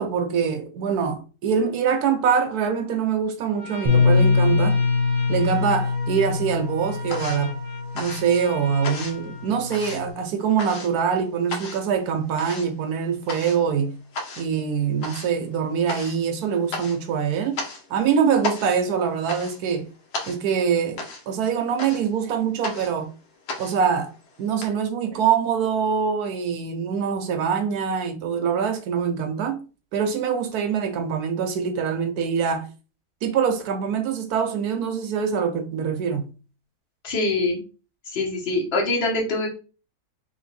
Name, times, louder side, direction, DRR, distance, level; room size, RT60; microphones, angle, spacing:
voice 1, 0.0-4.8 5.3-7.6 7.9-14.0 14.4-17.6 17.9-19.9 20.3-21.0 21.3-23.1 23.6-24.1 24.4-29.6 29.9-32.7 33.2-36.3, right 7 dB, 70° right, 0.9 m, -24 dB
Trumpet, 3.5-10.0, left 1 dB, 20° left, 1.5 m, -39 dB
Bass guitar, 3.9-8.4 9.1-10.1, left 4 dB, 40° right, 0.8 m, -23 dB
sound 1, 5.3-6.1 6.4-24.7, left 2 dB, 70° left, 1.5 m, -36 dB
voice 2, 37.0-37.6 38.1-39.5, left 2 dB, 40° left, 1.2 m, -24 dB
3.3 x 2.9 x 4.1 m
omnidirectional pair, 2.0 m